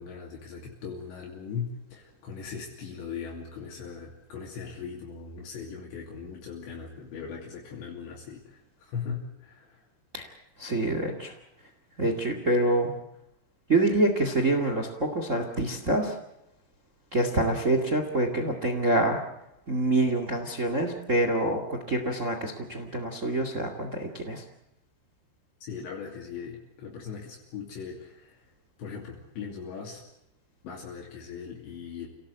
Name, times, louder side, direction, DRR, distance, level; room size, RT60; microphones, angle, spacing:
voice 1, 0.0-9.8 25.6-28.4 28.8-30.0 30.6-32.1, left 6 dB, 65° left, -1 dB, 4.8 m, -39 dB
voice 2, 10.6-11.3 12.0-12.9 13.7-16.1 17.1-19.2 19.7-24.4, right 2 dB, 60° right, 6 dB, 0.7 m, -26 dB
28.5 x 17.5 x 8.2 m, 0.83 s
omnidirectional pair, 5.5 m